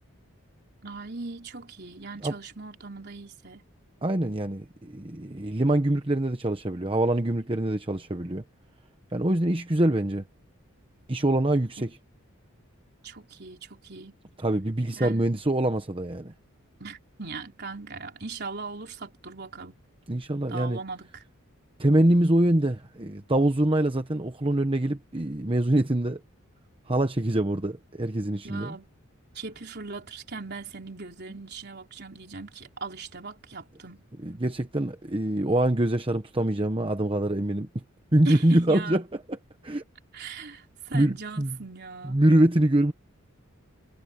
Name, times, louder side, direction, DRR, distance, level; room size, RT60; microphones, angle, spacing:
voice 1, 0.8-3.6 13.0-14.2 14.9-15.3 16.8-19.8 20.5-21.2 28.3-28.9 29.3-34.0 38.2-39.0 40.1-42.2, right 4 dB, 50° right, 4.0 m, -39 dB
voice 2, 4.0-8.4 9.1-10.2 11.1-11.9 14.4-16.3 20.1-20.8 21.8-26.2 26.9-28.7 34.2-37.7 38.1-39.0 39.6-39.8 40.9-41.5 42.0-42.9, right 1 dB, 25° right, 1.0 m, -24 dB
head